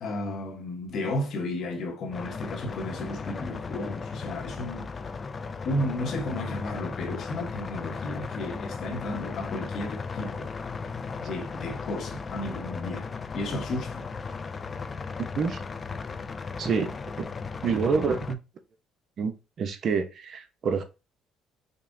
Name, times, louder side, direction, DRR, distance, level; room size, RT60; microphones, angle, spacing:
voice 1, 0.0-4.9 5.6-10.5 11.3-14.1, left 1 dB, 60° left, 0.9 m, -33 dB
sound 1, 2.1-18.3, left 5 dB, 30° left, 0.3 m, -36 dB
voice 2, 16.6-17.3 17.6-18.4 19.2-19.3 19.6-20.8, right 5 dB, 50° right, 0.6 m, -27 dB
5.2 x 2.1 x 2.6 m
cardioid pair, 95°, 0 cm